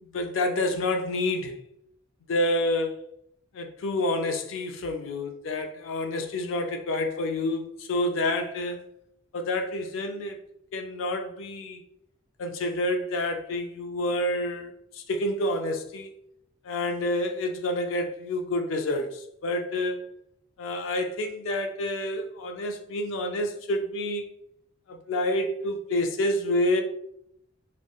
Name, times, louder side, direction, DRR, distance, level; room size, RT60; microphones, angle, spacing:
voice 1, 0.1-1.5 2.3-3.1 3.5-8.8 9.3-10.4 10.7-11.8 12.4-16.1 16.6-20.0 20.6-24.2 24.9-26.8, left 1 dB, 75° left, 0.4 m, -28 dB
2.9 x 2.1 x 2.3 m
head